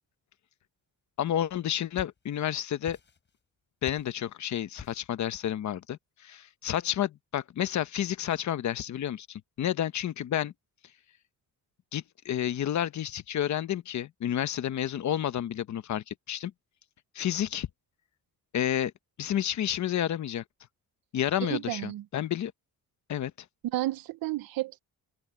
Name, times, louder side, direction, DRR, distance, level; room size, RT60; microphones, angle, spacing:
voice 1, 1.2-3.0 3.8-10.5 11.9-16.5 17.1-17.7 18.5-18.9 19.2-20.4 21.1-22.5 23.1-23.3, left 11 dB, 55° left, 0.9 m, -30 dB
sound 1, 1.6-2.5 2.8-3.5 3.8-4.2 4.8-5.2, left 5 dB, 30° left, 6.8 m, -47 dB
voice 2, 21.4-22.0 23.7-24.8, right 16 dB, 90° right, 0.7 m, -32 dB
open air
wide cardioid pair, 180°, 34 cm